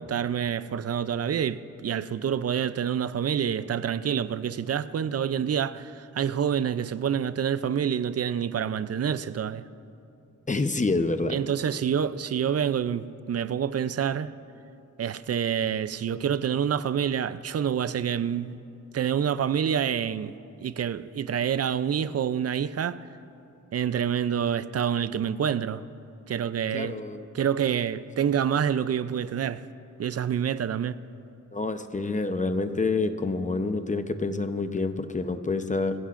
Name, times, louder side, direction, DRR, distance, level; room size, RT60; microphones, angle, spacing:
voice 1, 0.0-9.7 11.3-14.3 15.0-18.6 18.9-23.0 23.7-25.8 26.3-27.0 27.3-29.6 30.0-31.0, right 8 dB, 50° right, 0.4 m, -27 dB
voice 2, 10.5-11.3 26.7-27.3 31.5-35.9, left 3 dB, 25° left, 0.7 m, -27 dB
24.0 x 16.0 x 2.5 m
wide cardioid pair, 90°, 32 cm